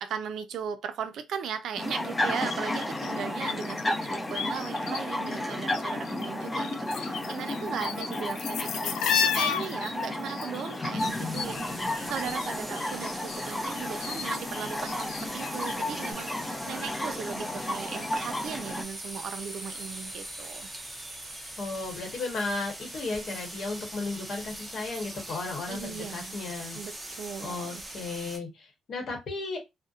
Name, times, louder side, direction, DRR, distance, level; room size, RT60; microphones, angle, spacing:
voice 1, 0.0-8.9 9.2-20.7 25.7-26.4 26.7-27.8, right 7 dB, 70° right, 0.4 m, -38 dB
sound 1, 1.8-18.8, left 1 dB, 25° left, 0.6 m, -33 dB
sound 2, 2.2-5.0 5.3-6.3 6.5-12.5 12.8-15.8 16.1-16.2, left 7 dB, 80° left, 0.3 m, -33 dB
sound 3, 11.0-28.4, right 1 dB, 10° right, 0.6 m, -42 dB
voice 2, 21.6-26.8 27.4-29.6, left 3 dB, 60° left, 0.9 m, -34 dB
2.7 x 2.1 x 2.4 m
cardioid pair, 90°, 0 cm